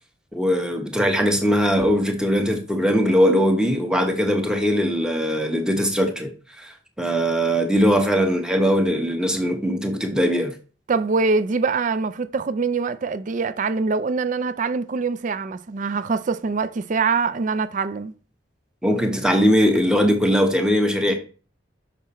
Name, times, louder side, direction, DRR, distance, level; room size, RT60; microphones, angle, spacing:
voice 1, 0.3-6.3 6.6-10.6 18.8-21.2, equal, 5° right, 1.0 m, -20 dB
voice 2, 10.9-18.1, right 4 dB, 40° right, 0.4 m, -24 dB
6.1 x 5.8 x 4.2 m
head